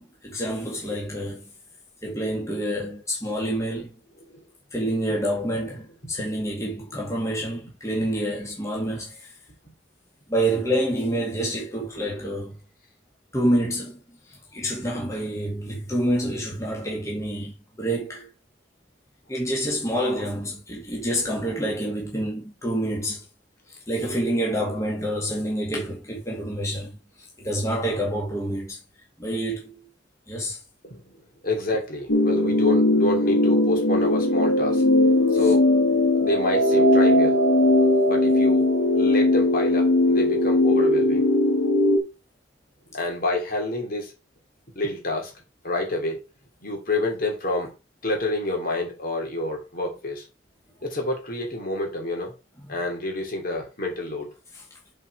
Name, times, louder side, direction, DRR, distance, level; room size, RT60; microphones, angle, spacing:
voice 1, 0.0-1.5 2.0-4.0 4.7-9.3 10.3-12.6 13.3-14.0 14.5-18.3 19.3-23.2 23.7-27.0 27.4-28.8 29.2-29.8 30.3-30.6 52.7-52.8, right 1 dB, 15° left, 2.0 m, -27 dB
voice 2, 6.2-6.5 30.8-31.0 31.4-34.8 35.3-35.7 36.2-37.4 38.1-38.7 39.0-41.2 42.9-44.1 44.7-45.3 45.6-46.2 46.6-47.7 48.0-50.2 50.8-52.3 52.7-54.3, left 2 dB, 45° left, 3.0 m, -28 dB
sound 1, 32.1-42.0, left 1 dB, 80° left, 1.6 m, -19 dB
7.8 x 4.6 x 4.8 m
head